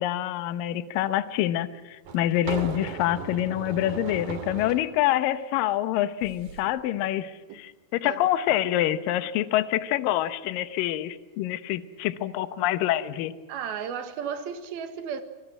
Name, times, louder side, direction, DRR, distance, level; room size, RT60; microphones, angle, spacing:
voice 1, 0.0-13.3, left 13 dB, 75° left, 2.5 m, -26 dB
sound 1, 0.9-1.0 2.0-4.9 6.2-6.6, right 5 dB, 55° right, 3.5 m, -37 dB
voice 2, 13.5-15.2, right 7 dB, 80° right, 3.5 m, -34 dB
25.5 x 19.0 x 9.1 m
omnidirectional pair, 4.4 m